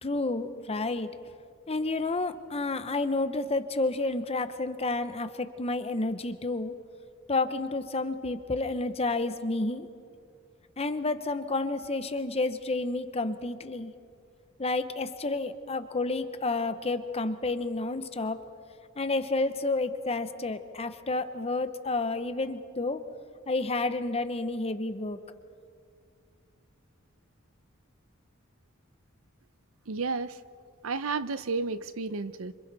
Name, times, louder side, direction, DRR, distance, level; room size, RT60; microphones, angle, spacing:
voice 1, 0.0-1.1 1.7-6.7 7.3-9.9 10.8-13.9 14.6-18.4 19.0-23.0 23.5-25.2, left 2 dB, 30° left, 10 dB, 1.0 m, -30 dB
voice 2, 29.9-30.4 30.8-32.5, right 4 dB, 85° right, 14 dB, 0.7 m, -32 dB
28.0 x 26.0 x 4.2 m, 2.3 s
head